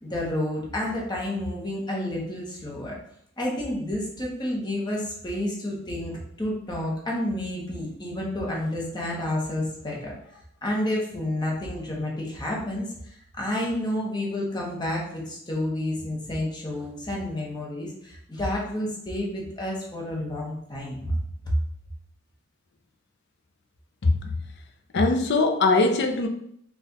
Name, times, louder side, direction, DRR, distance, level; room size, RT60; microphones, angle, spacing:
voice 1, 0.0-2.9 3.4-10.1 10.6-21.1, left 1 dB, 20° left, -3 dB, 1.0 m, -30 dB
voice 2, 24.9-26.3, left 3 dB, 55° left, 5 dB, 0.5 m, -21 dB
4.1 x 2.4 x 4.0 m, 0.70 s
head